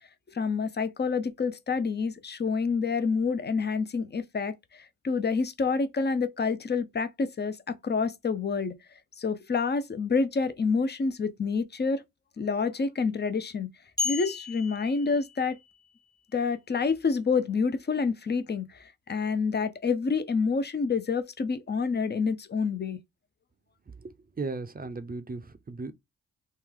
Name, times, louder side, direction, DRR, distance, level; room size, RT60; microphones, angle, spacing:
voice 1, 0.3-8.8 9.2-12.0 12.4-13.7 14.0-15.6 16.3-23.0, left 5 dB, 30° left, 0.6 m, -28 dB
sound 1, 14.0-15.8, left 4 dB, 10° left, 1.0 m, -34 dB
voice 2, 24.0-25.9, right 3 dB, 25° right, 0.7 m, -36 dB
3.2 x 2.2 x 3.7 m
supercardioid pair, 50°, 35 cm